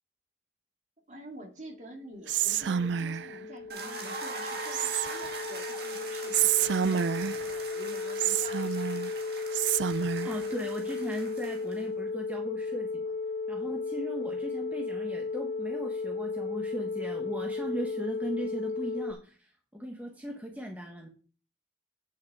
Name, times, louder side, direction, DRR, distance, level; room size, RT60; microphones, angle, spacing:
voice 1, 1.1-9.1, right 1 dB, 40° right, 2 dB, 2.4 m, -48 dB
sound 1, 2.1-19.1, left 4 dB, 40° left, 0.5 m, -35 dB
Whispering, 2.3-3.4 4.7-5.4 6.3-7.5 8.2-9.1 9.5-10.4, right 9 dB, 75° right, 0.4 m, -28 dB
sound 2, 3.7-11.8, right 3 dB, 55° right, 2.0 m, -41 dB
voice 2, 10.2-13.1 13.5-21.1, equal, 10° right, 1 dB, 1.2 m, -38 dB
9.4 x 6.6 x 4.8 m, 0.38 s
head